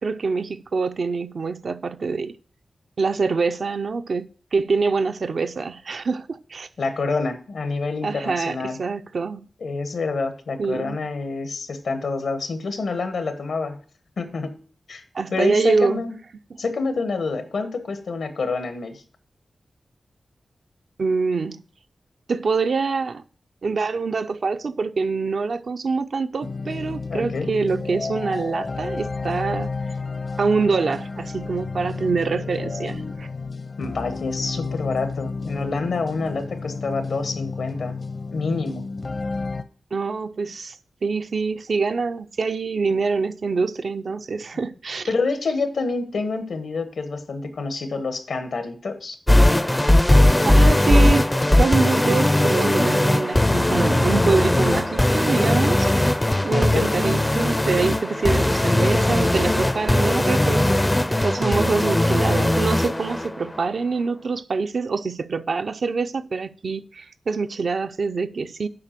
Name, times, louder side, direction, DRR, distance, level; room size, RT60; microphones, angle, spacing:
voice 1, 0.0-2.4 3.0-6.7 8.0-9.5 10.6-11.0 15.1-16.0 16.5-16.6 21.0-21.6 22.3-23.2 23.6-29.7 30.4-33.3 39.9-40.8 41.0-45.1 50.4-51.3 51.6-56.1 56.4-60.7 61.2-68.7, right 4 dB, 70° right, 0.5 m, -25 dB
voice 2, 6.8-8.8 9.6-13.8 14.2-14.6 14.9-15.0 15.3-16.2 16.6-19.0 27.1-27.5 33.8-38.0 38.3-38.9 45.1-49.2 56.5-56.9, left 4 dB, 90° left, 1.2 m, -27 dB
sound 1, 26.4-39.6, left 4 dB, 55° left, 0.6 m, -31 dB
sound 2, 49.3-63.3, left 1 dB, 15° left, 0.4 m, -19 dB
7.7 x 5.1 x 7.4 m
cardioid pair, 65°, 0 cm